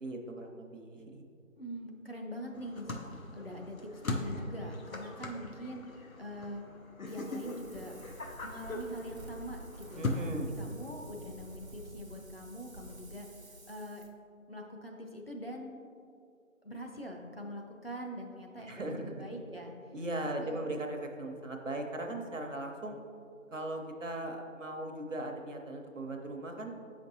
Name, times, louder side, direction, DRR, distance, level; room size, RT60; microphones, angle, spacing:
voice 1, 0.0-1.2 10.0-10.5 18.6-19.2 19.9-23.0 23.5-26.7, right 1 dB, 65° right, 3 dB, 0.8 m, -38 dB
voice 2, 1.6-2.9 3.3-6.6 7.1-8.0 8.4-10.3 10.6-14.0 14.5-15.8 16.6-19.7 20.1-20.6, equal, 45° left, 0 dB, 0.6 m, -44 dB
sound 1, 2.5-10.2, left 2 dB, 85° left, 0.8 m, -40 dB
Wind, 7.1-14.1, right 1 dB, 90° right, 1.0 m, -50 dB
7.2 x 5.2 x 2.7 m, 2.5 s
figure-of-eight pair, 175°, 40 cm